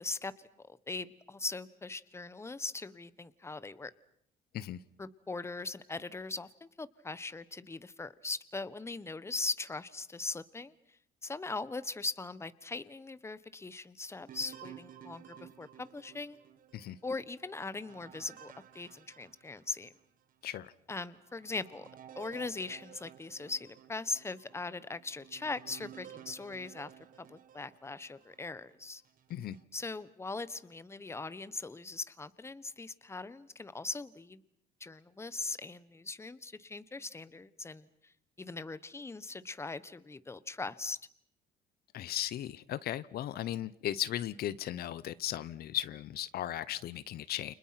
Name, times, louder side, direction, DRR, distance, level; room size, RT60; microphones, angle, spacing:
voice 1, 0.0-3.9 5.0-10.7 11.2-16.4 17.0-19.9 20.9-21.8 22.1-26.9 27.2-29.0 29.7-34.4 34.8-37.9 38.4-41.0, left 3 dB, 15° left, 1.3 m, -40 dB
sound 1, 14.3-20.0 20.6-20.7 21.2-28.4 29.0-29.6, right 10 dB, 55° right, 1.8 m, -54 dB
voice 2, 41.9-47.5, left 12 dB, 65° left, 1.0 m, -36 dB
30.0 x 29.0 x 5.9 m
cardioid pair, 110°, 17 cm